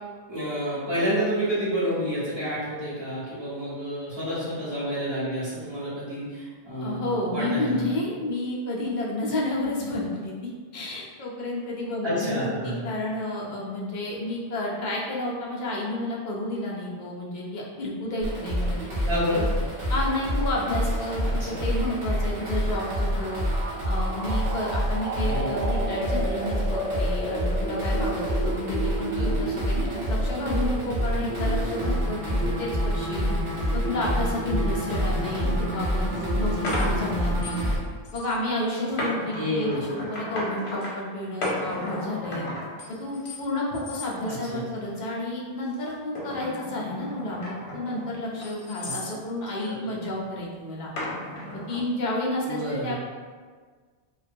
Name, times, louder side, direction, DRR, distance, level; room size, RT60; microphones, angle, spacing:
voice 1, 0.3-7.8 12.0-12.8 19.1-19.4 21.2-21.6 25.1-25.5 29.1-29.3 35.1-35.5 39.3-39.8 44.2-44.6 48.8-48.9 49.6-49.9 52.4-53.0, equal, 30° right, -11 dB, 0.9 m, -29 dB
voice 2, 6.8-10.3 10.7-19.4 19.9-23.5 23.9-33.3 33.7-37.6 38.1-42.5 43.0-50.9 51.5-53.0, left 1 dB, 55° left, -3 dB, 0.6 m, -31 dB
sound 1, 18.2-37.8, equal, 55° right, 0.7 m, -27 dB
sound 2, 35.6-35.7 36.1-37.8 38.0-38.3 38.9-40.9 41.4-43.4 43.7-44.1 44.6-45.0 45.7-49.2 51.0-51.8, left 1 dB, 80° left, 0.9 m, -34 dB
2.2 x 2.2 x 2.5 m, 1.5 s
omnidirectional pair, 1.1 m